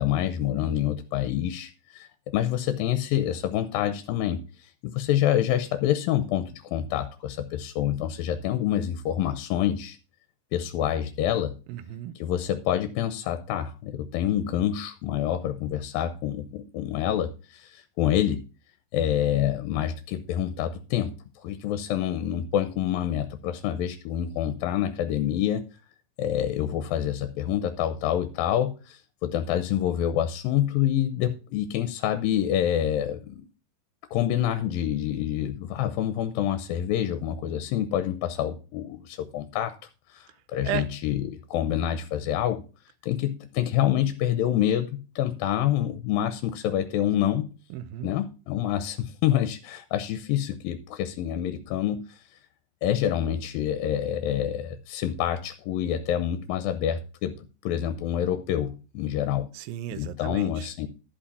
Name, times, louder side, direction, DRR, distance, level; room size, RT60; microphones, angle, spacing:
voice 1, 0.0-10.0 10.5-11.5 12.2-18.4 18.9-25.7 26.2-33.4 34.1-39.7 40.1-42.6 43.0-47.5 48.0-52.2 52.8-57.4 57.6-59.5 59.9-60.9, left 11 dB, 90° left, 2.5 m, -27 dB
voice 2, 11.7-12.1 40.6-40.9 47.7-48.1 59.5-60.7, right 11 dB, 85° right, 2.4 m, -34 dB
11.5 x 5.2 x 5.6 m
omnidirectional pair, 4.1 m